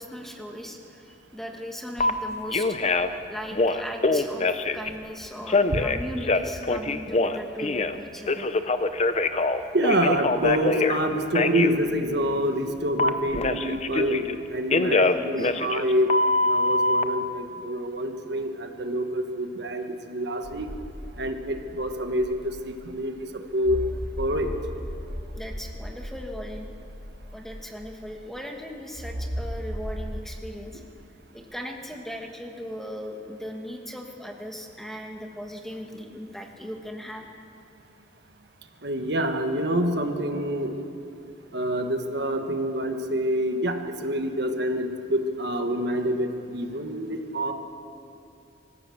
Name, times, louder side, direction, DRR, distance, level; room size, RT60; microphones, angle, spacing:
voice 1, 0.0-2.9 3.3-8.5 15.4-15.5 25.4-26.7 27.3-30.8 31.3-37.3, equal, ahead, 2 dB, 1.4 m, -38 dB
Telephone, 2.0-2.1 2.5-3.2 3.5-4.9 5.5-8.0 8.3-11.0 11.3-11.7 13.0-14.4 14.7-17.0, left 3 dB, 35° left, 0.7 m, -24 dB
voice 2, 9.7-16.1 16.4-20.7 21.2-23.1 23.5-23.8 24.2-24.5 38.8-40.7 41.5-47.5, equal, 55° right, 5 dB, 1.4 m, -27 dB
sound 1, 20.4-23.0 23.6-28.3 29.0-30.2, equal, 90° right, 4.7 m, -36 dB
25.0 x 15.5 x 7.1 m, 2.7 s
head